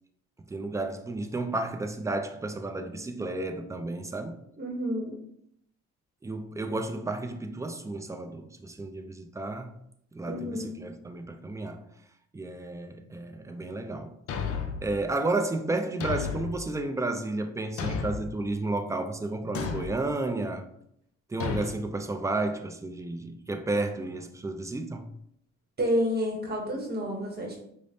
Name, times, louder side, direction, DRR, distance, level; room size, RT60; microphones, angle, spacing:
voice 1, 0.5-4.4 6.2-9.8 10.1-11.9 12.3-14.1 14.8-20.6 21.3-25.1, right 2 dB, 10° right, 0.3 m, -32 dB
voice 2, 4.6-5.2 10.3-10.9 25.8-27.6, equal, 35° right, 0.9 m, -30 dB
Thump thud, 14.3-14.9 16.0-16.6 17.8-18.3 19.5-20.0 21.4-21.7, left 6 dB, 50° left, 0.5 m, -32 dB
4.9 x 2.1 x 2.6 m
cardioid pair, 90°, 30 cm